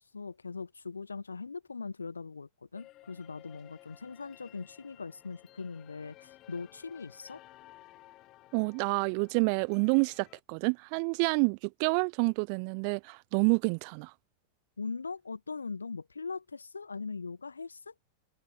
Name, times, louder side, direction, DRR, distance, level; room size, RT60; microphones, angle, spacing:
voice 1, 0.0-7.4 14.8-17.9, left 4 dB, 75° left, 2.0 m, -40 dB
sound 1, 2.7-10.4, left 16 dB, 35° left, 6.8 m, -57 dB
voice 2, 8.5-14.1, right 40 dB or more, 45° right, 1.4 m, -28 dB
figure-of-eight pair, 90°, 0 cm